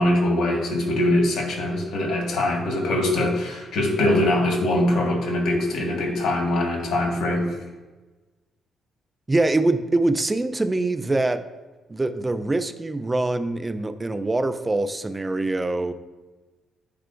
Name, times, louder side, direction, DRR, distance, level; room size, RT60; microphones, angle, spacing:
voice 1, 0.0-7.5, left 1 dB, 70° left, 1 dB, 1.5 m, -22 dB
voice 2, 9.3-11.4 11.9-15.9, right 2 dB, 20° right, 10 dB, 0.4 m, -24 dB
9.1 x 4.7 x 2.5 m, 1.2 s
cardioid pair, 90°, 0 cm